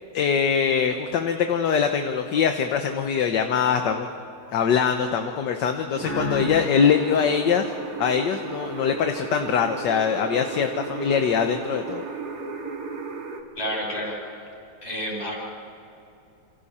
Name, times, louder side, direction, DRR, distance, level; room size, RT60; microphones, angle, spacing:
voice 1, 0.1-4.1 4.5-7.7 8.0-12.0, left 7 dB, 65° left, 6 dB, 1.5 m, -23 dB
sound 1, 5.9-13.4, right 4 dB, 50° right, 2.2 m, -35 dB
sound 2, 6.0-8.7, left 1 dB, 80° left, 3.5 m, -34 dB
voice 2, 13.6-14.2 14.8-15.4, equal, 30° left, -3 dB, 7.7 m, -29 dB
28.0 x 27.5 x 4.3 m, 2.7 s
omnidirectional pair, 2.2 m